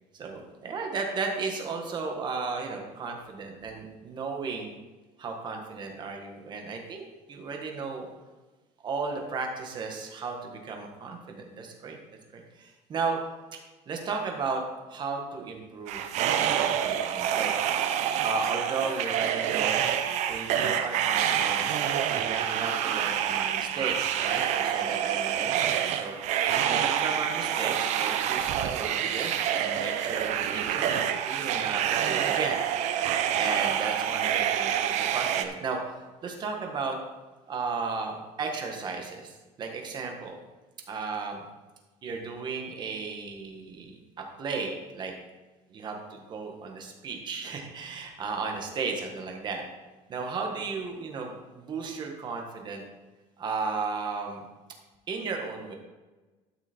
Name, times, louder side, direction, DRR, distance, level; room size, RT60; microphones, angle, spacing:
voice 1, 0.1-4.7 5.2-8.1 8.8-12.0 12.3-13.2 13.5-13.6 13.9-14.6 14.9-16.0 16.5-17.5 18.2-19.8 20.3-26.2 26.6-30.9 31.2-32.6 33.3-35.9 36.2-37.0 37.5-40.4 40.9-41.4 42.0-44.0 44.4-45.1 45.7-49.6 50.1-52.8 53.4-54.4 55.1-55.8, right 4 dB, 30° right, 2 dB, 1.7 m, -34 dB
sound 1, 15.9-35.5, right 9 dB, 55° right, 0.8 m, -27 dB
12.5 x 6.2 x 4.5 m, 1.2 s
cardioid pair, 160°, 14 cm